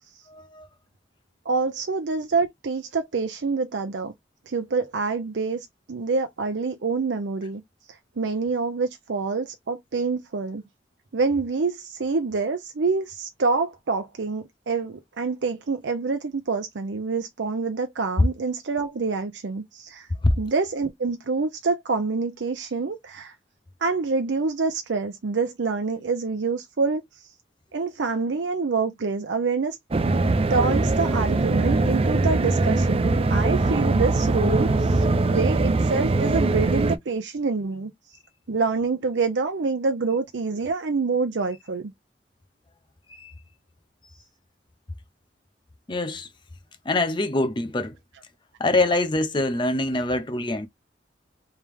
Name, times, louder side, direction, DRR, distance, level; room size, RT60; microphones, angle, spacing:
voice 1, 0.3-0.7 20.2-20.4 43.1-43.3 45.9-46.3 46.8-48.0 48.6-50.7, left 2 dB, 25° left, 0.6 m, -24 dB
voice 2, 1.5-4.1 4.5-7.6 8.2-10.6 11.1-20.1 20.4-23.3 23.8-27.0 27.7-29.8 30.5-35.0 35.3-37.9 38.5-41.9, right 4 dB, 85° right, 0.6 m, -26 dB
sound 1, 29.9-37.0, right 2 dB, 35° right, 0.4 m, -22 dB
3.3 x 3.0 x 3.3 m
head